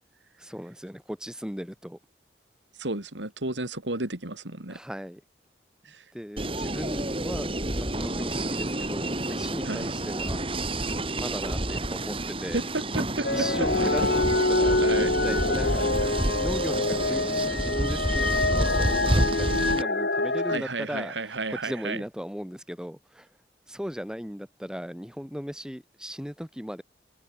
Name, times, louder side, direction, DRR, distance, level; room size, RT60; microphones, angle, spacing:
voice 1, 0.4-2.0 4.7-5.2 6.1-7.5 7.8-12.6 13.3-15.9 16.4-23.3 23.7-26.8, equal, 5° right, 7.0 m, -37 dB
voice 2, 2.8-4.8 5.8-6.0 9.6-9.9 12.5-12.6 12.9-13.3 14.8-15.1 20.5-22.0, right 2 dB, 90° right, 3.3 m, -32 dB
sound 1, 6.4-19.8, right 1 dB, 30° right, 5.8 m, -29 dB
sound 2, 13.2-20.6, left 2 dB, 70° left, 4.2 m, -26 dB
head